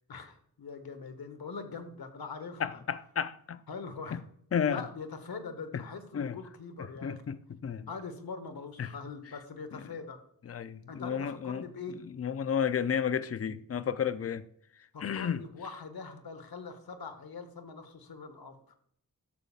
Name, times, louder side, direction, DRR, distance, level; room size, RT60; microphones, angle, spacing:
voice 1, 0.1-2.8 3.7-4.2 4.6-7.4 7.9-10.2 10.9-12.0 14.9-18.8, left 4 dB, 80° left, 1.2 m, -42 dB
voice 2, 2.6-3.6 4.1-4.2 4.5-4.8 5.7-5.8 6.1-6.4 6.8-7.9 8.8-8.9 9.7-9.8 10.5-11.7 12.2-14.5 15.0-15.4, left 7 dB, 40° left, 0.5 m, -32 dB
13.0 x 6.8 x 2.4 m
wide cardioid pair, 65°, 36 cm